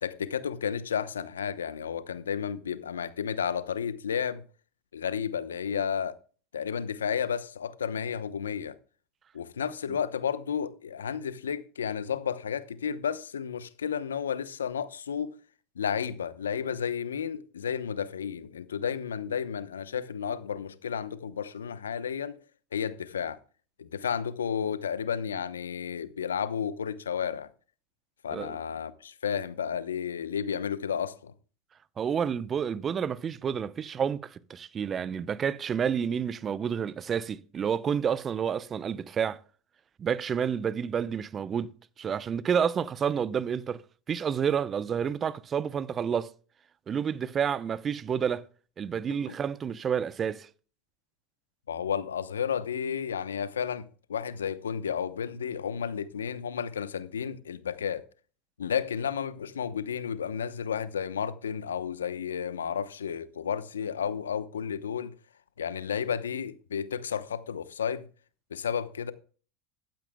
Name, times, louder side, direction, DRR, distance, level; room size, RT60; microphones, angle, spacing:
voice 1, 0.0-4.4 4.9-6.2 6.5-8.8 9.3-15.4 15.8-22.4 22.7-23.4 23.8-27.5 28.2-31.3 49.1-49.4 51.7-58.0 58.6-65.2 65.6-68.1 68.5-69.1, left 7 dB, 85° left, 0.9 m, -32 dB
voice 2, 32.0-39.4 40.0-41.7 42.0-43.8 44.1-46.3 46.9-48.4 48.8-50.5, right 7 dB, 30° right, 0.7 m, -29 dB
15.0 x 12.0 x 2.3 m
hypercardioid pair, 85°, 0 cm